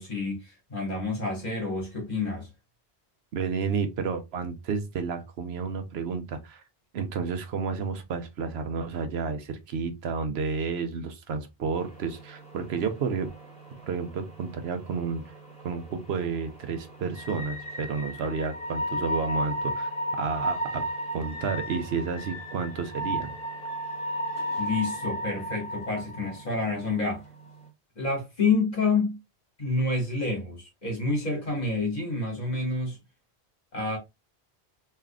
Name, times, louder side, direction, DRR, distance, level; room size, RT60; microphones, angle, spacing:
voice 1, 0.0-2.5 24.6-27.2 27.9-29.2 29.6-33.0 33.7-34.0, left 3 dB, 40° left, 1.7 m, -28 dB
voice 2, 3.3-6.6 6.9-13.3 13.7-15.3 15.6-23.3, right 5 dB, 75° right, 0.9 m, -31 dB
sound 1, 11.7-27.7, equal, 5° left, 2.0 m, -35 dB
3.5 x 3.2 x 2.3 m
omnidirectional pair, 1.1 m